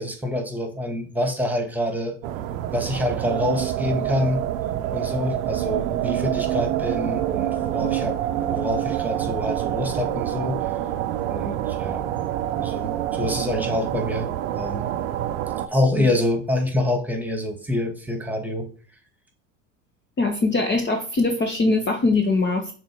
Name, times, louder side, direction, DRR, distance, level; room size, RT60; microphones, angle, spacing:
voice 1, 0.0-2.1 2.7-4.4 4.9-8.2 8.5-10.7 11.3-12.1 12.6-14.3 14.6-14.9 15.7-18.7, left 1 dB, 5° right, 4 dB, 1.7 m, -26 dB
sound 1, 2.2-15.7, right 12 dB, 70° right, 0.7 m, -27 dB
voice 2, 20.2-22.7, left 3 dB, 25° left, 4 dB, 1.1 m, -22 dB
6.2 x 3.8 x 4.5 m, 0.40 s
hypercardioid pair, 75°, 41 cm